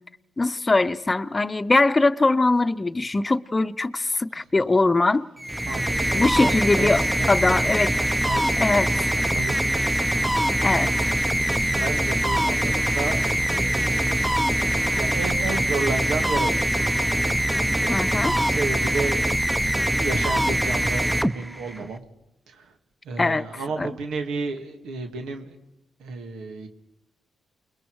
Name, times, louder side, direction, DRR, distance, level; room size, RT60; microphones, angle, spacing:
voice 1, 0.4-5.3 6.1-8.0 8.6-8.9 10.6-11.1 17.9-18.4 23.2-23.9, left 3 dB, 25° left, 0.8 m, -22 dB
sound 1, 5.4-21.9, right 1 dB, 5° right, 0.8 m, -23 dB
voice 2, 5.7-9.7 10.1-10.3 10.6-11.1 11.6-13.2 13.5-14.2 15.0-17.1 17.3-17.5 17.8-19.4 19.9-22.0 22.5-22.7 23.1-25.6 26.0-26.7, right 4 dB, 90° right, 2.0 m, -33 dB
29.0 x 21.0 x 4.8 m
cardioid pair, 65°, 0 cm